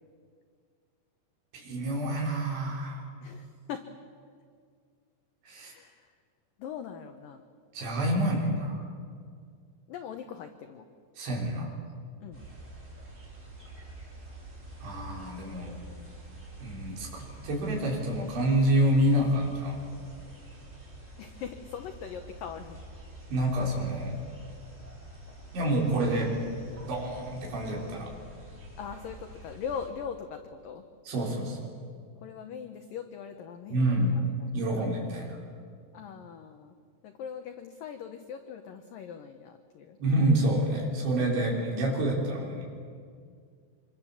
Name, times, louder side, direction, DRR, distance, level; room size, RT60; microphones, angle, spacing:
voice 1, 1.5-3.0 5.4-5.7 7.7-8.8 11.2-11.7 14.8-15.8 16.6-19.8 23.3-24.2 25.5-26.4 26.8-28.1 31.1-31.7 33.7-34.2 34.5-35.4 40.0-43.0, right 1 dB, 70° right, -1 dB, 6.6 m, -28 dB
voice 2, 3.2-3.9 5.5-6.1 6.6-7.4 9.9-10.9 12.2-12.4 21.2-22.8 28.8-30.8 32.2-34.7 35.9-36.8 37.0-40.0, left 7 dB, 85° left, 6 dB, 1.9 m, -41 dB
sound 1, 12.3-29.9, right 1 dB, 15° right, 4.9 m, -47 dB
26.5 x 23.5 x 7.2 m, 2.1 s
omnidirectional pair, 5.4 m